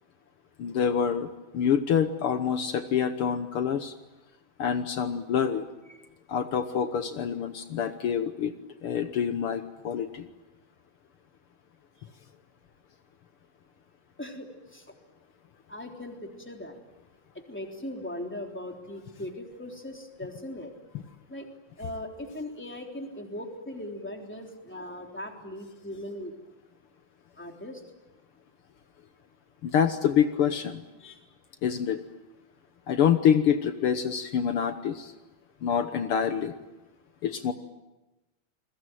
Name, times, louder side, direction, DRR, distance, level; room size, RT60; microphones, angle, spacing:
voice 1, 0.6-1.3 1.5-3.9 4.6-5.6 6.3-8.5 8.8-10.2 29.6-30.8 31.6-32.0 32.9-35.1 35.6-36.5 37.2-37.5, left 8 dB, 85° left, 9 dB, 1.2 m, -26 dB
voice 2, 14.2-14.9 15.7-16.8 17.5-20.7 21.3-21.5 21.8-26.3 27.4-27.8 31.0-31.2, left 1 dB, 5° left, 2 dB, 3.0 m, -39 dB
29.0 x 21.5 x 9.2 m, 1.1 s
omnidirectional pair, 4.1 m